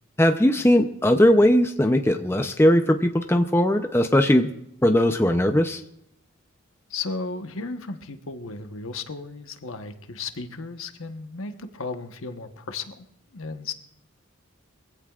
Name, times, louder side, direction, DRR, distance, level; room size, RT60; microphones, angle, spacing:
voice 1, 0.2-4.5 4.8-5.8, left 1 dB, 10° left, 6 dB, 0.6 m, -19 dB
voice 2, 6.9-13.1 13.3-13.7, left 4 dB, 80° left, 7 dB, 1.2 m, -34 dB
23.0 x 16.0 x 2.5 m, 0.78 s
head